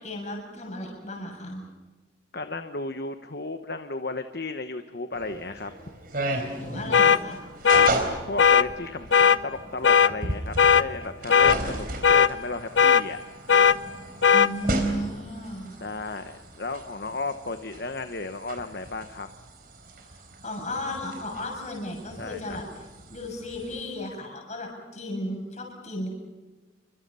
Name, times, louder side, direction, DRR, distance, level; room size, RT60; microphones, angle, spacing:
voice 1, 0.0-1.6 6.6-7.4 14.3-15.7 20.4-22.8 23.1-26.1, left 1 dB, 35° left, 0 dB, 7.3 m, -34 dB
voice 2, 2.3-5.7 8.3-13.2 15.7-19.3 22.2-22.6, left 3 dB, 55° left, 8 dB, 1.1 m, -34 dB
sound 1, 5.1-23.8, right 1 dB, 50° right, 4.3 m, -36 dB
sound 2, 6.9-7.2 7.7-7.9 8.4-8.7 9.1-9.4 9.8-10.1 10.6-10.8 11.3-11.6 12.0-12.3 12.8-13.0 13.5-13.8 14.2-14.5, left 7 dB, 70° left, 0.8 m, -17 dB
29.5 x 24.5 x 5.6 m, 1.3 s
head